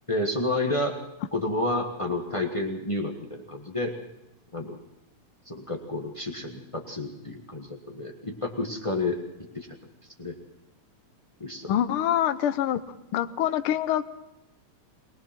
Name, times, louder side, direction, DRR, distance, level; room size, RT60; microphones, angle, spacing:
voice 1, 0.1-1.0 1.3-4.0 4.5-4.8 5.5-9.2 9.5-9.7 10.2-10.3 11.4-11.7, left 2 dB, 40° left, 2 dB, 0.4 m, -30 dB
voice 2, 11.7-12.8 13.1-14.1, left 11 dB, 70° left, 10 dB, 1.3 m, -25 dB
22.5 x 19.5 x 5.9 m, 0.93 s
omnidirectional pair, 3.3 m